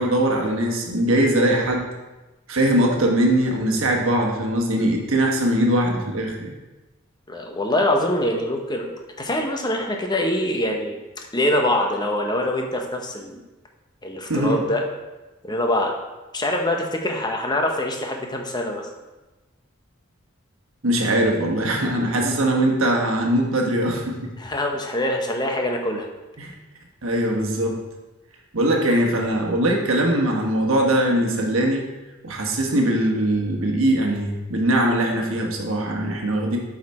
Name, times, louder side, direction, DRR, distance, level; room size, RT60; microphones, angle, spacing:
voice 1, 0.0-1.9 2.5-6.5 14.3-14.6 20.8-24.3 26.4-26.5 27.0-27.8 28.5-31.9 32.2-36.6, right 1 dB, 75° right, 0 dB, 1.2 m, -21 dB
voice 2, 7.3-11.0 11.3-13.4 14.0-14.9 15.4-15.9 16.3-18.9 24.4-26.1, left 1 dB, 20° left, 2 dB, 0.9 m, -24 dB
8.1 x 4.9 x 4.2 m, 1.1 s
head